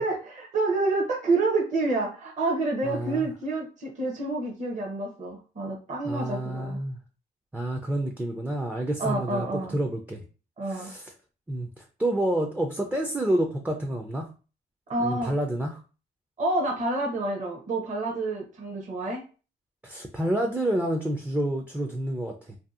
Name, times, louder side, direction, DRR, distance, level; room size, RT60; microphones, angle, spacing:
voice 1, 0.0-6.8 9.0-9.7 10.6-10.9 14.9-15.3 16.4-19.2, right 2 dB, 40° right, -1 dB, 0.7 m, -28 dB
voice 2, 2.8-3.3 6.0-7.0 7.5-10.2 10.7-11.1 11.5-14.3 15.0-15.8 19.8-22.6, right 1 dB, 10° right, 2 dB, 0.4 m, -29 dB
2.7 x 2.5 x 2.4 m, 0.35 s
cardioid pair, 90°, 20 cm